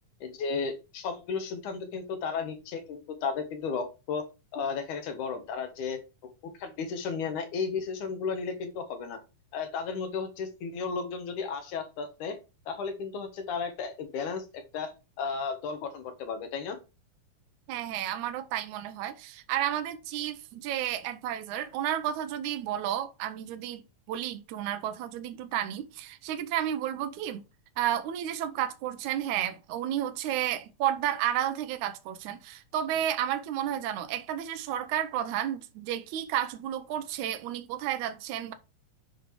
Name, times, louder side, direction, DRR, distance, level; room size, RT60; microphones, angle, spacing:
voice 1, 0.2-4.3 4.5-6.0 6.6-9.2 9.5-12.4 12.7-14.9 15.2-16.8, left 5 dB, 70° left, 2.8 m, -34 dB
voice 2, 17.7-23.8 24.1-27.4 27.8-38.5, right 11 dB, 75° right, 2.2 m, -32 dB
8.2 x 5.1 x 4.7 m
omnidirectional pair, 3.7 m